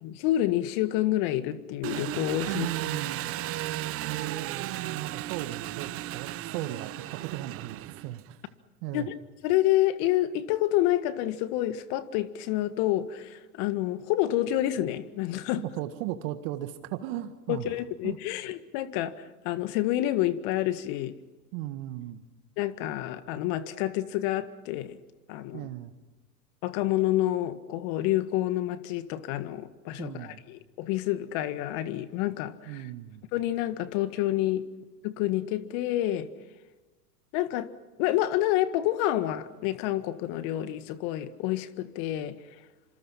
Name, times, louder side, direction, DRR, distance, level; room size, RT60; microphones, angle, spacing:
voice 1, 0.0-2.7 8.9-9.1 9.4-15.6 17.5-19.1 19.4-21.1 22.6-25.0 25.3-25.7 26.6-32.8 33.3-34.6 35.0-36.3 37.3-37.7 38.0-42.4, left 14 dB, 50° left, 12 dB, 1.9 m, -28 dB
Engine, 1.8-8.3, right 14 dB, 30° right, 0.8 m, -35 dB
voice 2, 2.5-3.3 4.0-8.4 8.8-9.1 15.6-17.8 18.0-18.2 21.5-22.2 25.5-25.9 30.0-30.4 32.6-33.2, right 14 dB, 50° right, 9 dB, 1.9 m, -36 dB
26.5 x 26.5 x 5.8 m, 1.2 s
hypercardioid pair, 105°, 47 cm